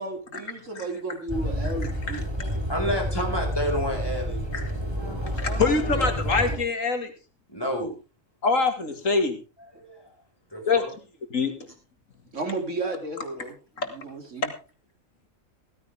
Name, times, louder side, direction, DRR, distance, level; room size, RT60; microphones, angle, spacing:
voice 1, 0.0-2.2 5.1-5.6 12.3-13.5 13.9-14.5, right 2 dB, 70° right, 5 dB, 3.1 m, -33 dB
sound 1, 1.3-6.6, equal, 20° right, 3.5 m, -29 dB
voice 2, 2.7-5.2 5.9-6.0 7.5-7.9 9.8-10.1 10.5-10.9, equal, 20° left, 1 dB, 5.4 m, -30 dB
voice 3, 5.3-7.1 8.4-9.4 10.7-10.8 11.3-11.5 13.8-13.9, left 4 dB, 85° left, 7 dB, 2.6 m, -24 dB
16.5 x 14.5 x 3.5 m, 0.33 s
omnidirectional pair, 1.3 m